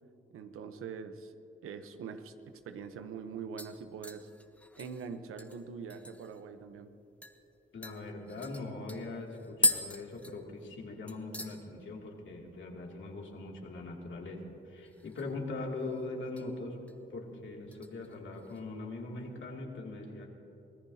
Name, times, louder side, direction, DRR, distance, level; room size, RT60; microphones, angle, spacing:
voice 1, 0.3-1.3 1.6-4.3 4.8-6.9, right 6 dB, 85° right, 9 dB, 0.9 m, -43 dB
sound 1, 2.5-2.6 3.0-3.3 3.6-6.4 6.7-6.8 7.2-7.4 7.8-10.8 11.1-11.6 11.9-12.3 12.6-12.7 14.8-15.4 15.7-16.5 16.9-17.2 17.7-18.6 19.0-19.1, left 1 dB, 5° left, 1.4 m, -37 dB
voice 2, 7.7-16.8 17.1-20.3, left 2 dB, 65° left, -1 dB, 2.7 m, -41 dB
25.0 x 17.5 x 2.8 m, 3.0 s
cardioid pair, 70°, 21 cm